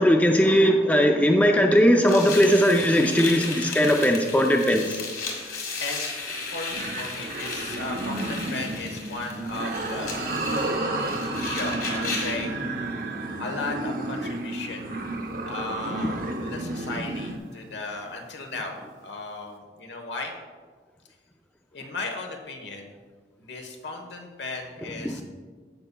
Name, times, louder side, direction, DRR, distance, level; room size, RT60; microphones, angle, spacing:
voice 1, 0.0-5.0 25.0-25.1, equal, 10° left, 3 dB, 0.4 m, -19 dB
sound 1, 2.1-12.5, left 3 dB, 55° left, 1.6 m, -35 dB
voice 2, 5.8-10.2 11.2-12.5 13.4-14.9 15.4-20.3 21.7-22.9 23.4-25.2, left 3 dB, 80° left, 3 dB, 1.1 m, -36 dB
sound 2, 6.7-17.4, right 1 dB, 50° right, 0.7 m, -32 dB
sound 3, 10.0-16.5, right 3 dB, 75° right, 1.6 m, -36 dB
15.5 x 5.5 x 2.3 m, 1.5 s
head